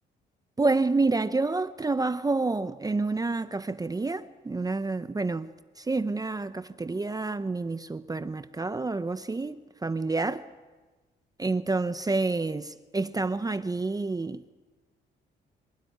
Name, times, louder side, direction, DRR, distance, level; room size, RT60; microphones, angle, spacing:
voice 1, 0.6-5.5 5.8-10.5 11.4-14.5, right 3 dB, 20° right, 0.7 m, -28 dB
25.5 x 12.5 x 9.5 m
cardioid pair, 90°, 20 cm